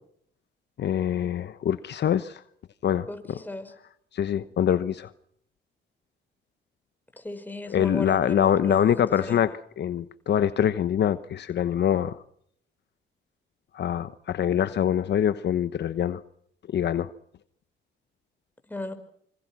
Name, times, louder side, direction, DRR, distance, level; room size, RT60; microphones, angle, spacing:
voice 1, 0.8-2.4 2.8-3.4 4.1-5.1 7.7-12.2 13.7-16.2 16.7-17.1, left 9 dB, 60° left, 1.1 m, -24 dB
voice 2, 3.1-3.7 7.2-9.4 18.7-18.9, left 2 dB, 10° left, 5.5 m, -36 dB
27.0 x 25.0 x 6.2 m
cardioid pair, 90°, 20 cm